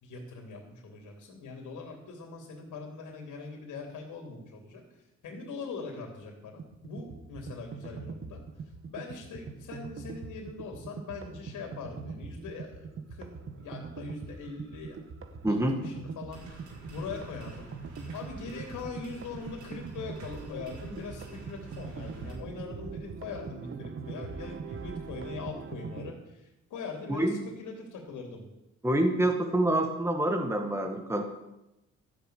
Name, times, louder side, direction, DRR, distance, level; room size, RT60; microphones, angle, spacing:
voice 1, 0.0-4.8 5.2-8.4 8.9-15.0 15.5-17.7 18.1-28.5, left 4 dB, 80° left, 1 dB, 3.1 m, -42 dB
sound 1, 6.6-26.1, right 5 dB, 45° right, 1.4 m, -42 dB
sound 2, 16.3-22.3, right 2 dB, 70° right, 4.9 m, -49 dB
voice 2, 27.1-27.4 28.8-31.2, right 1 dB, 10° right, 4 dB, 1.8 m, -26 dB
13.5 x 7.0 x 9.3 m, 0.92 s
cardioid pair, 90°, 30 cm